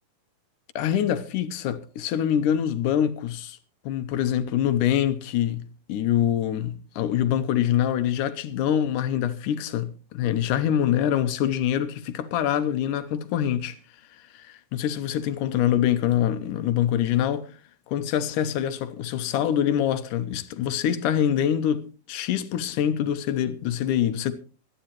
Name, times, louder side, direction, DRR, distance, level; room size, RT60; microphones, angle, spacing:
voice 1, 0.8-3.6 3.9-13.8 14.3-17.5 17.9-24.3, left 10 dB, 70° left, 2.1 m, -25 dB
25.0 x 10.5 x 3.0 m
omnidirectional pair, 4.4 m